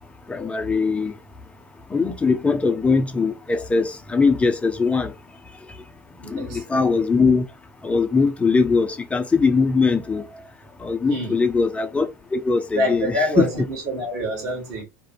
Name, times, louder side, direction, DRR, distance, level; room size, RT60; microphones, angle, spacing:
voice 1, 0.3-1.1 1.9-5.1 6.3-7.4 7.8-10.2 10.8-13.5, left 4 dB, 15° left, 0.5 m, -21 dB
voice 2, 6.2-6.6 11.1-11.4 12.7-14.8, equal, 50° right, 1.4 m, -26 dB
2.4 x 2.0 x 2.9 m
figure-of-eight pair, 80°, 9 cm